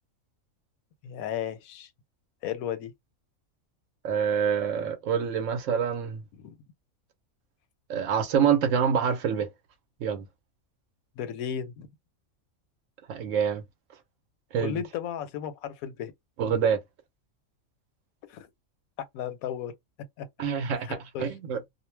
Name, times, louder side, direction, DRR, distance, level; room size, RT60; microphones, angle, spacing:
voice 1, 1.0-1.9 2.4-2.9 6.3-6.6 11.2-11.9 14.6-16.1 18.3-18.5 19.1-19.7 20.2-20.3 20.8-21.3, left 9 dB, 85° left, 1.0 m, -34 dB
voice 2, 4.0-6.2 7.9-9.5 10.0-10.3 13.1-13.6 14.5-14.8 16.4-16.8 20.4-21.7, right 7 dB, 70° right, 0.9 m, -26 dB
2.4 x 2.1 x 3.1 m
omnidirectional pair, 1.4 m